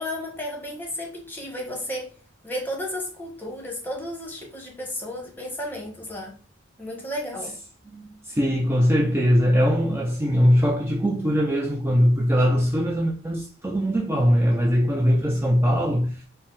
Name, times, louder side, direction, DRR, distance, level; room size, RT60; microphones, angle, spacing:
voice 1, 0.0-2.1 2.4-6.3 6.8-7.6, left 1 dB, 10° left, 1.1 m, -33 dB
voice 2, 7.9-16.2, equal, 10° right, 0.4 m, -21 dB
4.3 x 2.1 x 3.8 m
head